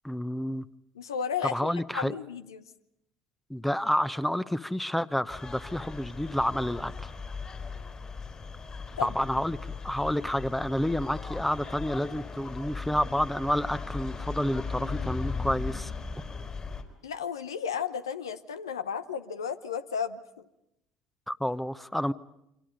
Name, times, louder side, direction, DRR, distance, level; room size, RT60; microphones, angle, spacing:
voice 1, 0.0-0.6 1.4-2.2 3.5-7.1 9.0-15.9 21.3-22.1, equal, 5° left, 14 dB, 1.0 m, -29 dB
voice 2, 0.9-2.7 9.0-9.1 17.0-20.2, left 7 dB, 85° left, 12 dB, 0.9 m, -33 dB
sound 1, 5.3-16.8, left 4 dB, 35° left, 4.4 m, -38 dB
29.0 x 24.5 x 5.3 m, 0.84 s
hypercardioid pair, 60°, 2 cm